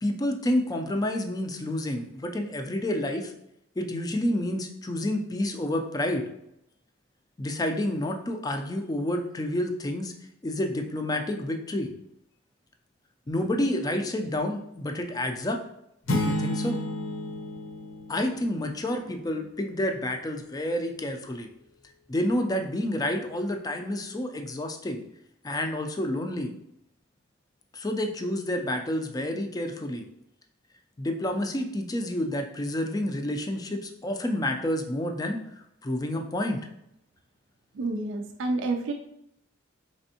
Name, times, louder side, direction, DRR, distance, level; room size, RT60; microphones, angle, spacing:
voice 1, 0.0-3.3 3.8-6.3 7.4-10.1 10.4-11.9 13.3-15.6 16.1-16.8 18.1-21.5 22.1-25.0 25.4-26.5 27.7-30.0 31.0-35.4 35.8-36.6, left 1 dB, 20° left, 5 dB, 0.3 m, -29 dB
sound 1, 16.1-18.9, left 1 dB, 75° left, 0.7 m, -31 dB
voice 2, 37.7-38.9, right 2 dB, 65° right, 3 dB, 0.4 m, -29 dB
4.2 x 3.4 x 2.7 m, 0.79 s
head